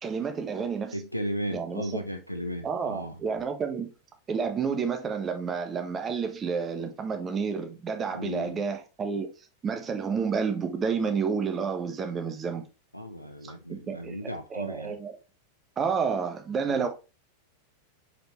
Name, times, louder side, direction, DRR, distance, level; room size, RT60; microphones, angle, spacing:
voice 1, 0.0-1.0 1.5-2.0 2.6-3.9 4.3-9.3 9.6-12.6 13.7-15.2 15.8-16.9, right 5 dB, 20° right, 1.4 m, -30 dB
voice 2, 0.9-3.2 8.1-8.6 12.9-15.0 16.6-16.9, equal, 90° left, 0.8 m, -35 dB
6.3 x 5.1 x 3.1 m
figure-of-eight pair, 90°, 0 cm